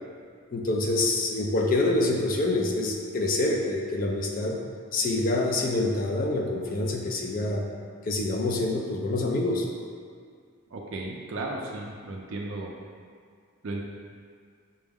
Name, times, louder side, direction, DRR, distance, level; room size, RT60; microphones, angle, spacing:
voice 1, 0.5-4.6 4.9-7.7 8.0-9.7, left 2 dB, 40° left, 1 dB, 0.4 m, -26 dB
voice 2, 10.7-12.7 13.6-13.8, right 2 dB, 60° right, -1 dB, 0.4 m, -35 dB
5.4 x 2.0 x 3.5 m, 2.1 s
head